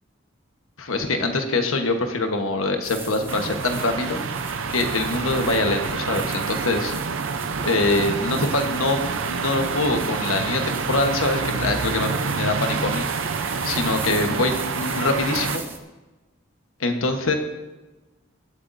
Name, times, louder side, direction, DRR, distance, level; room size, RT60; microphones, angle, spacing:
voice 1, 0.8-4.2 4.7-6.9 7.6-9.0 9.3-13.1 13.6-15.6 16.8-17.3, left 2 dB, 90° left, 5 dB, 1.2 m, -24 dB
sound 1, 2.8-15.8, right 3 dB, 10° right, 0.6 m, -38 dB
sound 2, 3.3-15.6, right 5 dB, 75° right, 0.6 m, -28 dB
20.5 x 8.1 x 2.6 m, 1.1 s
head